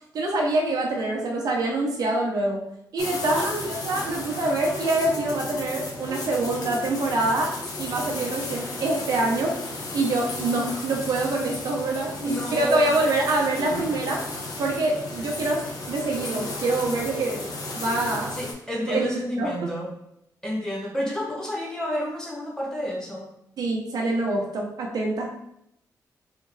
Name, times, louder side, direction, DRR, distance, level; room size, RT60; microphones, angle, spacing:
voice 1, 0.1-2.6 2.9-7.5 7.8-9.5 9.9-14.2 14.6-17.4 17.7-18.4 18.9-19.5 23.6-25.3, right 2 dB, 70° right, 0 dB, 0.9 m, -25 dB
sound 1, 3.0-18.5, left 2 dB, 70° left, 0.9 m, -34 dB
voice 2, 12.1-12.9 18.3-19.9 20.4-23.3, equal, 10° left, -3 dB, 0.8 m, -30 dB
3.6 x 3.4 x 3.2 m, 0.77 s
wide cardioid pair, 175°, 7 cm